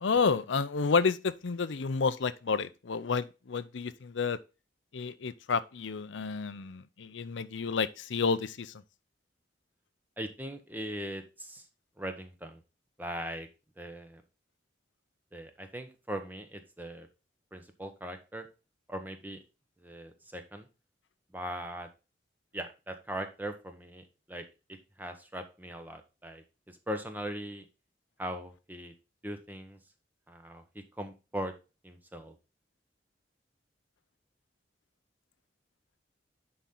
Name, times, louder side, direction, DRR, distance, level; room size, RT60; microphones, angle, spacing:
voice 1, 0.0-4.4 4.9-8.7, left 5 dB, 80° left, 0.6 m, -30 dB
voice 2, 10.2-11.7 12.0-12.6 13.0-13.5 13.8-14.2 15.3-17.1 17.5-18.5 18.9-19.4 19.8-20.7 21.3-21.9 22.5-27.6 28.2-28.9 29.2-29.8 30.3-31.5 31.8-32.4, right 1 dB, 10° right, 1.0 m, -40 dB
10.0 x 4.3 x 3.8 m
head